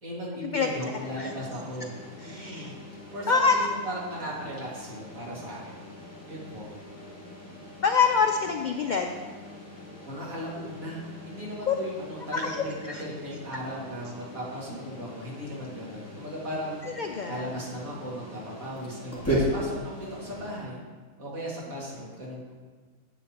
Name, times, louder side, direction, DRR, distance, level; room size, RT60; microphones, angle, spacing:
voice 1, 0.0-1.9 2.2-2.7 3.1-5.8 6.3-6.7 10.0-16.8 17.3-20.8 21.2-22.5, equal, 85° right, -5 dB, 2.6 m, -37 dB
sound 1, 0.7-20.6, equal, 10° left, 2.2 m, -38 dB
voice 2, 2.2-2.7 3.3-3.7 7.8-9.1 11.7-11.8 12.3-13.0 16.8-17.5, left 5 dB, 80° left, 4 dB, 0.4 m, -25 dB
10.0 x 8.0 x 2.9 m, 1.5 s
omnidirectional pair, 1.4 m